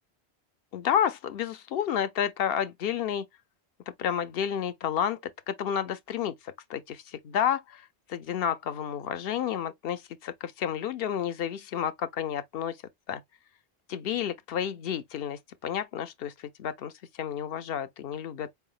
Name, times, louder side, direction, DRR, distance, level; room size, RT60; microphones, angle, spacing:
voice 1, 0.7-3.3 4.0-12.8 13.1-13.2 13.9-16.9 17.2-18.5, left 9 dB, 65° left, 0.8 m, -31 dB
4.6 x 3.5 x 2.4 m
omnidirectional pair, 1.1 m